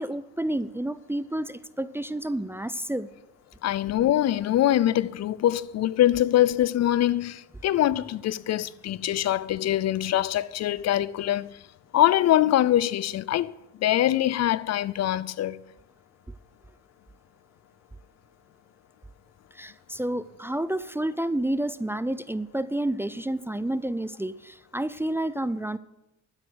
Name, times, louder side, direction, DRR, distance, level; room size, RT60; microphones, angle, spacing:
voice 1, 0.0-3.1 19.5-25.8, right 1 dB, 10° right, 0.4 m, -30 dB
voice 2, 3.6-11.5 11.9-13.5 13.8-15.6, left 13 dB, 60° left, 0.5 m, -23 dB
12.5 x 9.6 x 6.2 m
cardioid pair, 90°, 30 cm